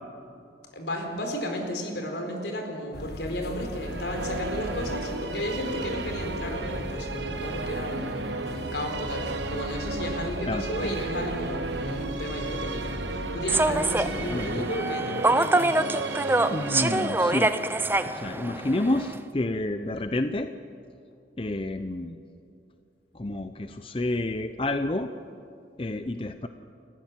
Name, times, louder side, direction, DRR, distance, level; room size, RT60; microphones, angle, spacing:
voice 1, 0.7-15.9, equal, 80° left, 3 dB, 4.3 m, -33 dB
sound 1, 2.9-14.5, left 1 dB, 60° left, 1.3 m, -38 dB
sound 2, 3.6-19.7, right 3 dB, 90° right, 1.2 m, -35 dB
voice 2, 10.4-11.0 14.2-14.7 16.5-17.6 18.1-20.5 21.4-22.2 23.1-25.1 25.8-26.5, left 2 dB, 30° left, 9 dB, 0.6 m, -29 dB
Human voice / Subway metro underground, 13.5-19.2, right 2 dB, 10° right, 0.5 m, -25 dB
30.0 x 15.0 x 7.5 m, 2.5 s
head